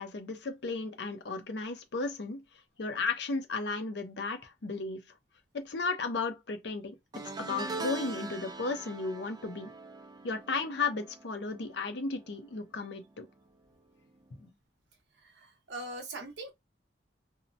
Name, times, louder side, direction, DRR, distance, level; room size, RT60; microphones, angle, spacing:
voice 1, 0.0-2.4 2.8-5.1 5.5-9.7 10.2-13.3 14.4-14.5, left 4 dB, 70° left, 0.6 m, -34 dB
sound 1, 7.1-12.5 12.8-13.2 14.4-14.5, right 3 dB, 20° right, 0.4 m, -42 dB
voice 2, 15.4-16.5, right 2 dB, 75° right, 0.8 m, -41 dB
2.7 x 2.0 x 2.5 m
head